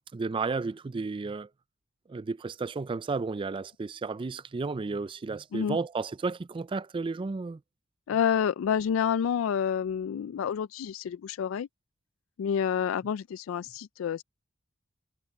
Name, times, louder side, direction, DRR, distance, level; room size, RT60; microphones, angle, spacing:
voice 1, 0.1-1.5 2.1-7.6, right 4 dB, 25° right, 0.3 m, -33 dB
voice 2, 8.1-11.7 12.4-14.2, left 8 dB, 80° left, 0.3 m, -28 dB
head